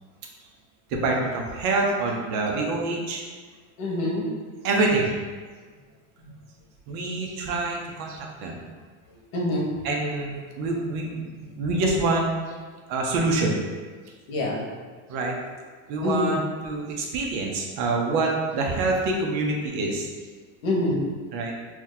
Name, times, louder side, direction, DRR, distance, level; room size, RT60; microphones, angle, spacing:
voice 1, 0.9-3.2 4.6-5.2 6.9-8.6 9.8-12.3 12.9-13.6 15.1-15.4 15.9-20.1 21.3-21.5, right 2 dB, 50° right, 0 dB, 0.7 m, -26 dB
voice 2, 3.8-4.3 6.2-6.3 9.3-9.7 14.3-14.7 16.0-16.4 20.6-21.1, left 1 dB, 80° left, -2 dB, 1.2 m, -25 dB
3.0 x 2.7 x 3.8 m, 1.5 s
supercardioid pair, 160°, 41 cm